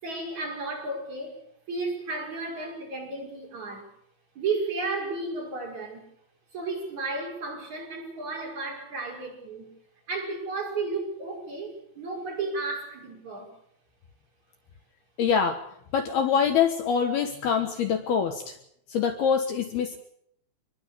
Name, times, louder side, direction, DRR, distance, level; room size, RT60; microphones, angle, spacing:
voice 1, 0.0-1.4 1.7-3.9 4.3-6.0 6.5-9.7 10.1-13.5, right 3 dB, 40° right, 6.7 m, -33 dB
voice 2, 15.2-15.6 15.9-18.6 18.9-20.0, left 7 dB, 65° left, 2.9 m, -24 dB
26.0 x 21.5 x 6.9 m
omnidirectional pair, 5.5 m